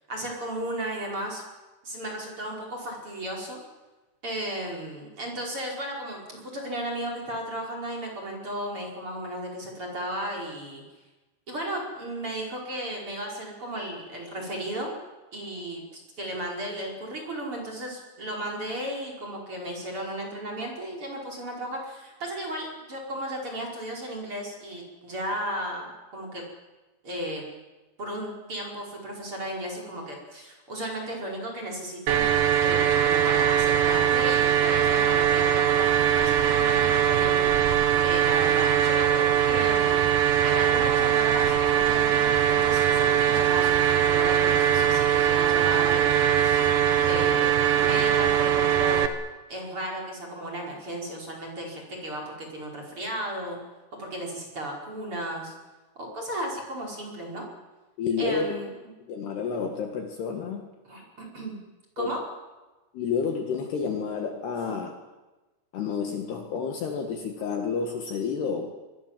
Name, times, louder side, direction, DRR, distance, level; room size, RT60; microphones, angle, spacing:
voice 1, 0.1-1.4 1.8-3.6 4.2-10.8 11.5-14.9 15.3-26.5 27.0-27.4 28.0-37.7 38.0-40.0 40.4-46.1 46.4-46.7 47.0-49.0 49.5-53.6 53.9-55.5 56.0-57.5 58.2-58.7 60.9-61.6 62.0-62.2, right 1 dB, 25° right, 0 dB, 5.4 m, -34 dB
sound 1, 32.1-49.1, right 10 dB, 75° right, 2.0 m, -21 dB
voice 2, 58.0-58.5 59.0-60.7 62.0-62.1 62.9-65.0 65.7-68.7, left 5 dB, 60° left, 4 dB, 3.4 m, -30 dB
26.5 x 23.0 x 7.6 m, 1.1 s
omnidirectional pair, 6.0 m